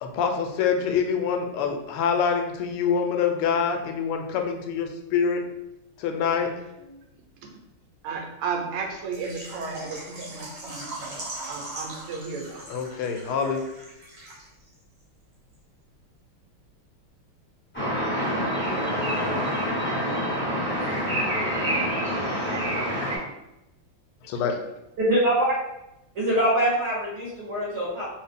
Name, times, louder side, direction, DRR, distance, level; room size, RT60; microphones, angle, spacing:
voice 1, 0.0-5.4 6.0-6.5 6.8-7.0 12.7-13.6 24.2-24.6, left 6 dB, 85° left, 4 dB, 1.5 m, -25 dB
voice 2, 8.0-12.6, right 5 dB, 90° right, 2 dB, 1.6 m, -34 dB
Water / Liquid, 9.1-14.7 15.0-15.1 15.5-15.6, right 2 dB, 60° right, 0.6 m, -40 dB
sound 1, 17.7-23.2, equal, 10° left, 0.5 m, -26 dB
voice 3, 25.0-25.5 26.1-28.0, right 1 dB, 40° right, -7 dB, 1.3 m, -23 dB
3.3 x 2.7 x 3.5 m, 0.90 s
omnidirectional pair, 2.4 m